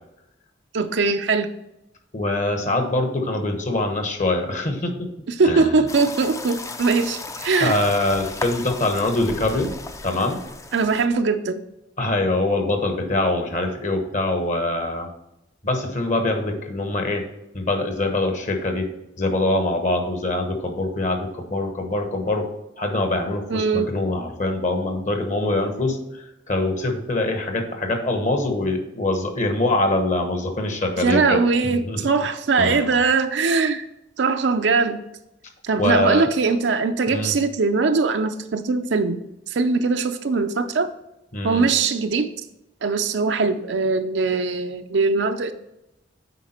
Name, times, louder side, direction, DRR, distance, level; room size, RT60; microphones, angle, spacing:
voice 1, 0.7-1.5 5.4-7.8 10.7-11.6 23.5-23.9 31.0-33.9 34.2-35.0 35.6-40.9 41.4-42.3 42.8-45.5, right 4 dB, 70° right, 7 dB, 0.5 m, -21 dB
voice 2, 2.1-5.1 5.4-5.7 7.6-9.7 10.0-10.4 12.0-15.1 15.6-17.2 17.5-18.9 19.2-22.5 22.8-31.4 31.7-32.0 32.6-33.0 35.8-36.3 37.1-37.3 41.3-41.7, left 2 dB, 45° left, 5 dB, 1.1 m, -24 dB
sound 1, 5.9-11.1, left 3 dB, 15° left, 0.4 m, -35 dB
8.2 x 4.8 x 4.3 m, 0.87 s
head